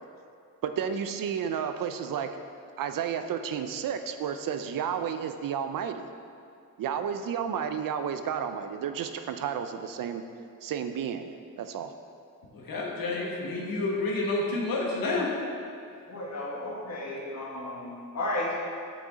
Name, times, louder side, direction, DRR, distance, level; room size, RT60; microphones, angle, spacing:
voice 1, 0.6-2.3 2.8-6.1 6.8-10.2 10.6-11.9, right 8 dB, 70° right, 8 dB, 0.5 m, -32 dB
voice 2, 12.5-15.3, left 2 dB, 75° left, -2 dB, 1.3 m, -29 dB
voice 3, 16.1-18.5, left 1 dB, 50° left, -3 dB, 1.5 m, -33 dB
6.2 x 6.0 x 3.9 m, 2.4 s
cardioid pair, 95°, 35 cm